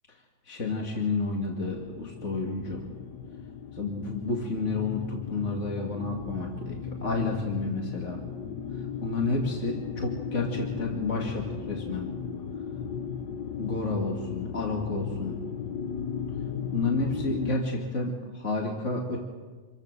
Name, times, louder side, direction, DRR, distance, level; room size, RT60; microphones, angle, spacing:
voice 1, 0.5-2.8 3.7-8.2 9.0-12.1 13.6-15.4 16.7-19.2, left 3 dB, 45° left, 0 dB, 2.9 m, -30 dB
sound 1, 1.7-17.6, left 7 dB, 85° left, 1.6 m, -36 dB
28.0 x 22.5 x 6.8 m, 1.4 s
omnidirectional pair, 1.8 m